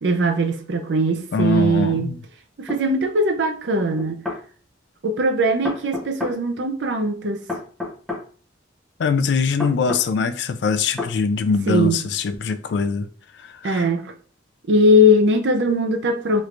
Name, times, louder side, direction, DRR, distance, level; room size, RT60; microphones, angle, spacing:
voice 1, 0.0-2.1 2.6-4.2 5.0-7.4 11.7-12.0 13.6-14.1 14.7-16.4, equal, 65° right, 0.5 m, -20 dB
voice 2, 1.3-2.2 9.0-13.1 13.6-13.9, left 5 dB, 65° left, 0.3 m, -22 dB
sound 1, 2.7-2.8 4.0-4.4 5.6-6.4 7.5-8.3 9.6-10.1 11.0-11.2, left 3 dB, ahead, 0.7 m, -29 dB
3.2 x 3.1 x 2.5 m
head